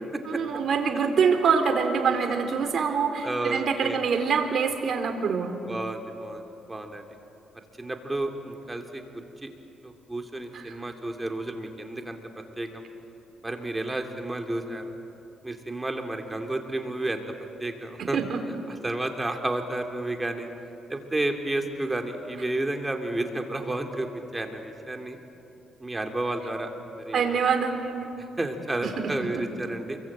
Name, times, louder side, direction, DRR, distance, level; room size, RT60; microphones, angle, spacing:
voice 1, 0.3-5.5 10.5-10.6 18.0-18.4 27.1-28.1 28.8-28.9, right 6 dB, 60° right, 5 dB, 3.7 m, -25 dB
voice 2, 3.2-4.0 5.6-7.1 7.8-9.0 9.4-9.5 9.8-12.2 12.6-12.8 13.4-14.9 15.4-17.2 17.6-18.2 18.7-20.5 20.9-25.2 25.8-26.7 27.0-27.4 28.4-30.0, right 2 dB, 15° right, 4 dB, 3.1 m, -31 dB
28.5 x 23.0 x 9.0 m, 2.8 s
cardioid pair, 90°, 0 cm